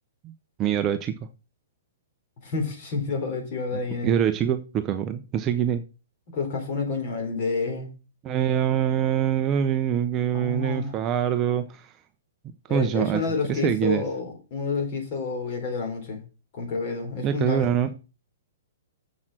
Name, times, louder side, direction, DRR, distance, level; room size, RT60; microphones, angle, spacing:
voice 1, 0.6-1.1 4.0-5.8 8.2-11.9 12.7-14.0 17.2-18.0, right 9 dB, 20° right, 0.6 m, -24 dB
voice 2, 2.4-4.1 6.3-7.9 10.3-10.9 12.7-16.2 16.5-17.7, left 4 dB, 35° left, 3.6 m, -29 dB
7.3 x 6.4 x 7.5 m
hypercardioid pair, 170°, 0 cm